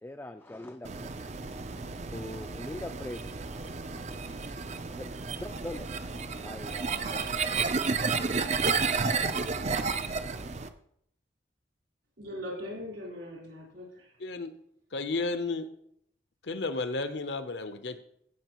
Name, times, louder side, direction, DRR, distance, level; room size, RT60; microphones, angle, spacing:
voice 1, 0.0-1.1 1.7-3.2 5.0-5.1 5.4-5.9 6.4-7.7, left 1 dB, 10° left, 7 dB, 0.4 m, -42 dB
sound 1, 0.8-10.7, right 4 dB, 35° right, 0.5 m, -32 dB
voice 2, 12.2-14.2, left 1 dB, 75° right, -3 dB, 4.2 m, -40 dB
voice 3, 14.2-14.5 14.9-15.7 16.4-18.0, left 3 dB, 65° left, 9 dB, 0.8 m, -32 dB
16.0 x 6.4 x 3.0 m, 0.70 s
head